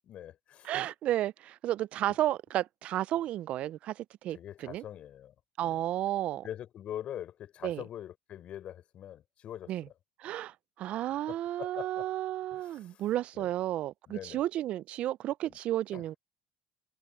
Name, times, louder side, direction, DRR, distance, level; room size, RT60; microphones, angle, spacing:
voice 1, 0.0-0.7 2.1-2.2 4.3-5.3 5.6-5.8 6.4-9.9 11.3-12.1 12.5-13.0 13.3-13.5 14.1-14.4 15.5-15.6 15.9-16.1, left 11 dB, 50° left, 6.3 m, -43 dB
voice 2, 0.6-4.8 5.6-6.4 7.6-7.8 9.7-9.8 10.2-16.1, right 13 dB, 55° right, 0.4 m, -32 dB
supercardioid pair, 90°, 2 cm